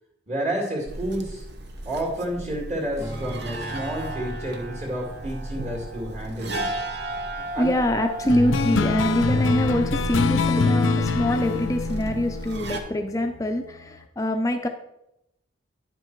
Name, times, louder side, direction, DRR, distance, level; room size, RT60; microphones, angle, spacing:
voice 1, 0.3-1.4 1.8-6.7 7.5-7.7, right 1 dB, 35° right, -1 dB, 2.1 m, -30 dB
sound 1, 0.8-12.8, right 1 dB, 55° right, 0.9 m, -34 dB
Strum, 3.0-9.4, right 1 dB, 20° right, 2.1 m, -41 dB
voice 2, 7.6-14.7, left 1 dB, 15° left, 6 dB, 0.5 m, -24 dB
sound 2, 8.3-13.2, left 4 dB, 85° left, 0.6 m, -25 dB
10.0 x 5.6 x 4.6 m, 0.83 s
head